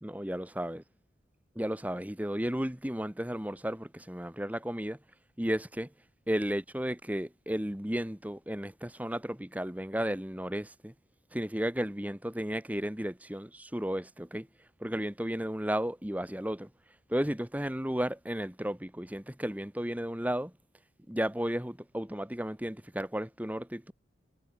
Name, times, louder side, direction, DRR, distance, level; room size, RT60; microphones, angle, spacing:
voice 1, 0.0-0.8 1.5-5.0 5.4-5.9 6.3-10.9 11.3-14.5 14.8-16.7 17.1-20.5 21.1-23.9, equal, 10° right, 1.2 m, -33 dB
head